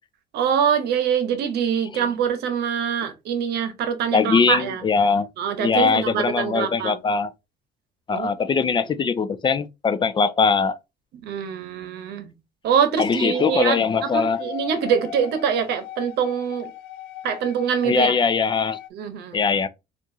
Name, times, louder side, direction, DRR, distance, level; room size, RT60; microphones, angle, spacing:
voice 1, 0.3-4.8 5.4-7.0 8.1-8.3 11.2-12.3 12.6-16.7 17.2-18.1 18.9-19.4, right 7 dB, 80° right, 0.8 m, -24 dB
voice 2, 4.1-5.3 5.6-7.3 8.1-10.8 13.0-14.4 17.8-18.8 19.3-19.7, left 5 dB, 30° left, 0.4 m, -21 dB
sound 1, 13.2-18.9, left 8 dB, 90° left, 0.4 m, -37 dB
4.5 x 2.5 x 2.6 m
cardioid pair, 110°, 17 cm